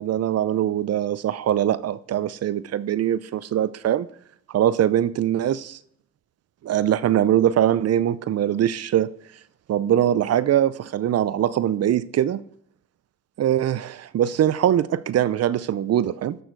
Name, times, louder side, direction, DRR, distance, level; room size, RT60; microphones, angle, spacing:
voice 1, 0.0-4.1 4.5-5.8 6.6-9.1 9.7-12.4 13.4-16.4, right 11 dB, 55° right, 0.6 m, -22 dB
13.5 x 6.4 x 4.7 m
cardioid pair, 90°, 30 cm